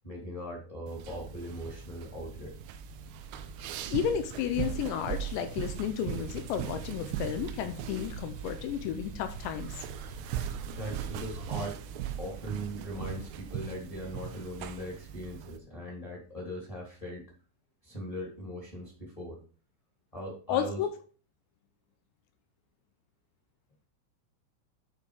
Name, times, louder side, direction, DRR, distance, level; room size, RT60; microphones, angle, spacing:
voice 1, 0.0-2.6 10.1-10.2 10.6-11.8 12.2-17.3 17.8-19.4 20.1-20.8, equal, 10° left, -3 dB, 1.5 m, -40 dB
sound 1, 0.9-15.6, right 9 dB, 90° right, 3.3 m, -40 dB
sound 2, 1.8-11.5, right 5 dB, 65° right, 2.7 m, -46 dB
voice 2, 3.6-9.8 20.5-20.9, left 9 dB, 80° left, 9 dB, 2.6 m, -32 dB
10.0 x 4.5 x 4.9 m, 0.39 s
omnidirectional pair, 5.8 m